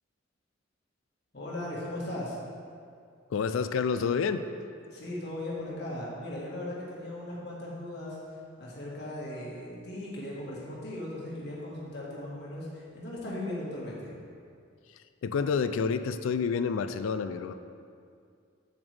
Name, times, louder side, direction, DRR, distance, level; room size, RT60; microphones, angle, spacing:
voice 1, 1.3-2.4 4.9-14.1, left 1 dB, 55° left, -5 dB, 1.7 m, -38 dB
voice 2, 3.3-4.5 15.2-17.5, left 5 dB, 85° left, 10 dB, 0.3 m, -28 dB
8.0 x 7.1 x 3.4 m, 2.3 s
head